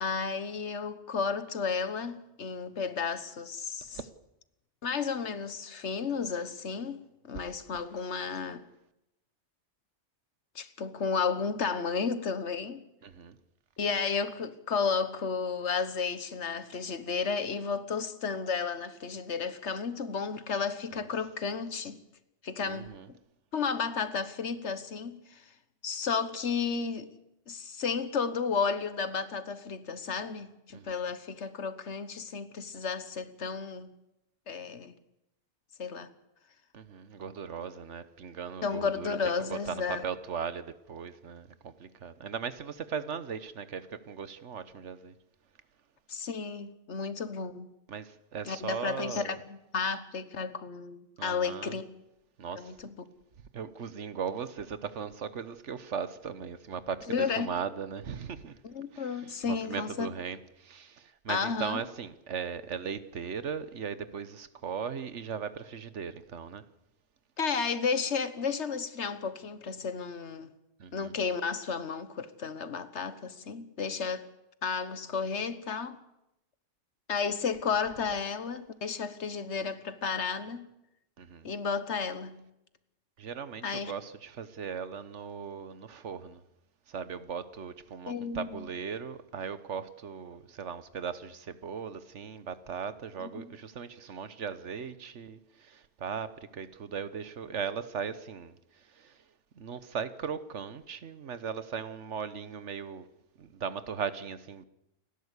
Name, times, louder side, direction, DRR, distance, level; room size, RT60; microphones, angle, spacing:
voice 1, 0.0-4.0 4.8-8.6 10.5-12.8 13.8-22.0 22.4-23.2 23.5-25.4 25.8-27.1 27.5-33.9 34.5-34.9 35.8-36.1 38.6-40.0 46.1-47.7 48.5-51.9 52.6-52.8 57.1-57.5 58.6-60.1 61.3-61.8 67.4-70.5 70.9-74.3 74.6-76.0 77.1-80.7 81.4-82.4 83.6-83.9 88.1-88.5 93.2-93.5, left 5 dB, 75° left, 1.6 m, -33 dB
voice 2, 13.0-13.4 20.9-21.1 22.6-23.1 30.7-30.9 36.7-45.1 47.9-49.4 51.2-51.8 52.4-52.8 53.5-58.6 58.9-66.6 70.8-71.2 81.2-81.5 83.2-86.4 86.9-99.3 99.5-103.1 103.4-104.6, right 6 dB, 85° right, 1.4 m, -38 dB
29.0 x 12.0 x 8.2 m
omnidirectional pair, 1.2 m